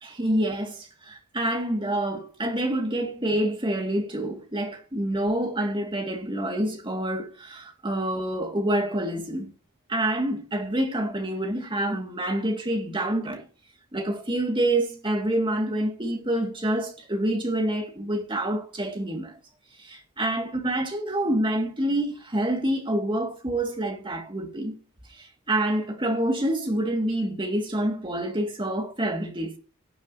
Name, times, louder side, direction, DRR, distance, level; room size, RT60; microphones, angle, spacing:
voice 1, 0.0-9.5 9.9-13.4 13.9-19.4 19.8-24.7 25.1-29.6, right 1 dB, 20° right, 2.1 m, -27 dB
18.0 x 7.3 x 2.8 m
head